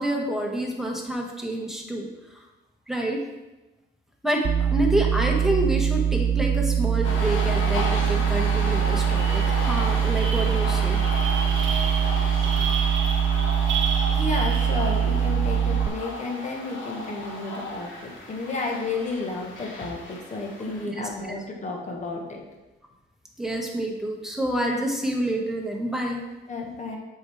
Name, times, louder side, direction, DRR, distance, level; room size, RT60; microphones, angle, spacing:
voice 1, 0.0-2.1 2.9-3.2 4.2-11.0 20.7-20.8 23.4-26.2, right 1 dB, ahead, 0 dB, 1.4 m, -28 dB
sound 1, 4.4-15.9, right 8 dB, 35° right, 0.4 m, -23 dB
sound 2, 7.0-20.8, left 2 dB, 80° left, 1.6 m, -34 dB
sound 3, 8.4-8.5 8.8-15.3, right 5 dB, 75° right, 1.0 m, -33 dB
voice 2, 14.1-22.4 26.5-27.0, left 3 dB, 35° left, 0 dB, 1.4 m, -32 dB
7.7 x 4.8 x 3.6 m, 1.1 s
cardioid pair, 90°, 20 cm